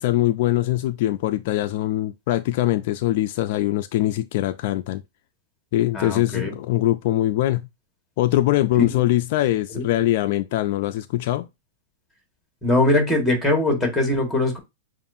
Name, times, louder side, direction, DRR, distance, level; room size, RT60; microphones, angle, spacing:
voice 1, 0.0-5.0 5.7-7.7 8.2-11.5, left 15 dB, 55° left, 0.3 m, -22 dB
voice 2, 5.9-6.5 8.7-9.0 9.7-9.9 12.6-14.6, left 2 dB, ahead, 1.6 m, -21 dB
7.1 x 2.5 x 2.6 m
supercardioid pair, 150°, 0 cm